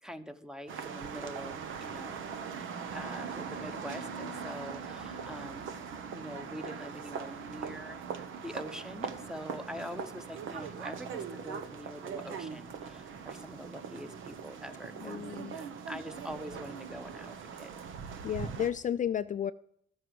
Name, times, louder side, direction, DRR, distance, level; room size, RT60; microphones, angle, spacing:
voice 1, 0.0-2.3 2.9-5.7 6.1-15.2 15.5-17.7, equal, 5° right, 11 dB, 0.9 m, -44 dB
sound 1, 0.7-18.7, right 6 dB, 80° right, 1.0 m, -41 dB
sound 2, 3.0-17.3, right 2 dB, 20° right, 1.6 m, -56 dB
voice 2, 15.0-15.6 18.2-19.5, left 9 dB, 40° left, 11 dB, 0.4 m, -32 dB
13.5 x 6.6 x 7.7 m, 0.72 s
cardioid pair, 90°, 20 cm